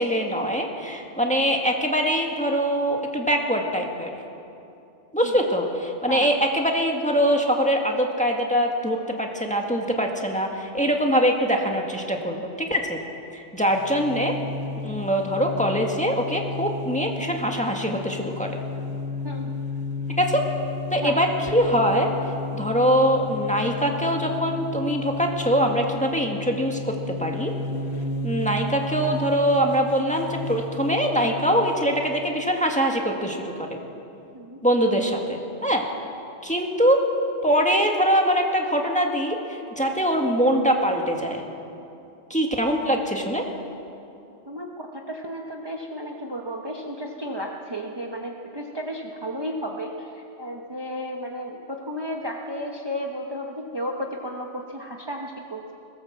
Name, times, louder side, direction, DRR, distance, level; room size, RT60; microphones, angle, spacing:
voice 1, 0.0-4.2 5.1-13.0 13.3-14.3 14.8-18.6 20.2-20.5 20.9-22.1 22.5-27.5 28.2-33.8 34.6-35.9 36.4-37.0 37.4-41.4 42.3-43.4, equal, 5° left, 1 dB, 1.9 m, -23 dB
sound 1, 13.6-31.8, left 3 dB, 60° left, 1.7 m, -33 dB
voice 2, 44.5-55.7, equal, 20° right, 0 dB, 1.3 m, -33 dB
20.5 x 18.0 x 7.6 m, 2.7 s
omnidirectional pair, 1.2 m